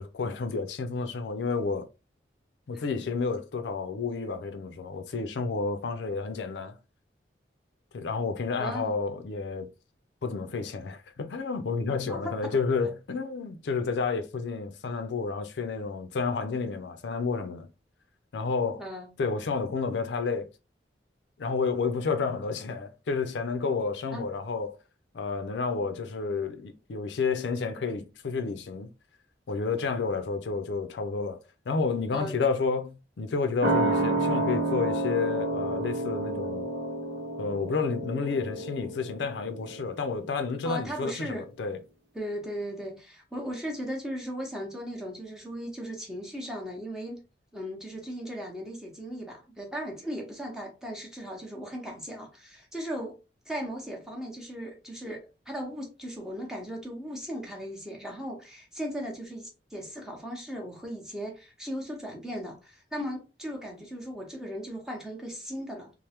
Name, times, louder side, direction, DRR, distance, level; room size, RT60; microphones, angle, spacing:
voice 1, 0.0-1.9 2.7-6.8 7.9-9.7 10.2-17.7 18.3-18.8 19.2-20.5 21.4-24.8 25.1-28.9 29.5-31.4 31.7-36.7 37.4-41.8, left 4 dB, 80° left, 0.4 m, -30 dB
voice 2, 8.6-9.0 11.9-12.6 18.8-19.1 24.1-24.3 32.1-32.4 40.6-41.4 42.1-47.2 47.5-53.2 53.5-65.9, equal, 5° right, 0.8 m, -37 dB
sound 1, 33.6-40.7 41.0-41.1, right 2 dB, 80° right, 0.8 m, -30 dB
3.2 x 2.0 x 2.8 m
head